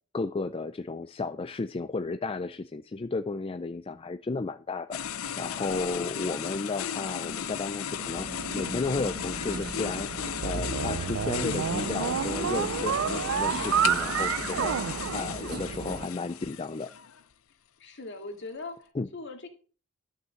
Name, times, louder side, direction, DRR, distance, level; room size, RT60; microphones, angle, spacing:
voice 1, 0.1-10.1 10.4-16.9 18.9-19.1, left 3 dB, 25° left, 11 dB, 0.4 m, -33 dB
sound 1, 4.9-17.2, left 8 dB, 80° left, 0.6 m, -35 dB
sound 2, 7.5-16.1, right 2 dB, 45° right, 0.8 m, -39 dB
sound 3, 10.4-15.9, right 8 dB, 65° right, 0.4 m, -29 dB
voice 2, 17.8-19.5, left 3 dB, 55° left, 4 dB, 2.3 m, -40 dB
12.5 x 5.5 x 6.4 m, 0.38 s
head